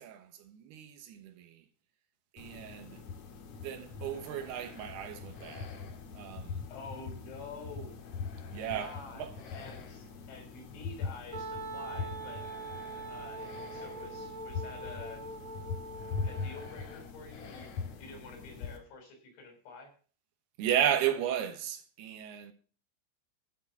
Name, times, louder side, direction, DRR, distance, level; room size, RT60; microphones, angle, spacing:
voice 1, 0.0-1.7 2.3-3.0 3.6-5.8 6.1-6.6 8.5-9.4 20.6-22.5, right 10 dB, 70° right, 2.8 m, -34 dB
sound 1, 2.4-18.8, left 5 dB, 55° left, 2.3 m, -42 dB
voice 2, 6.7-8.0 8.6-9.3 9.5-12.4 13.1-15.3 16.2-17.7 18.0-19.9, left 3 dB, 80° left, 6.3 m, -48 dB
Wind instrument woodwind instrument, 11.3-16.9, right 3 dB, 40° right, 0.6 m, -43 dB
13.0 x 7.2 x 5.9 m
omnidirectional pair, 5.3 m